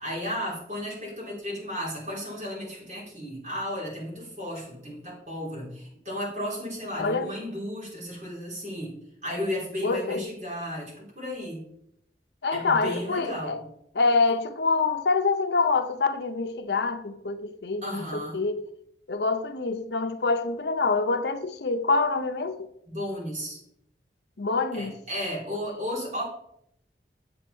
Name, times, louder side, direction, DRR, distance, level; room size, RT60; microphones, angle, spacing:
voice 1, 0.0-11.6 12.5-13.7 17.8-18.4 22.9-23.6 24.7-26.2, equal, 40° right, 3.9 m, -34 dB
voice 2, 7.0-7.3 9.8-10.3 12.4-13.6 13.9-18.6 19.1-22.7 24.4-25.0, left 3 dB, 70° left, 0.6 m, -26 dB
7.9 x 7.6 x 4.4 m
head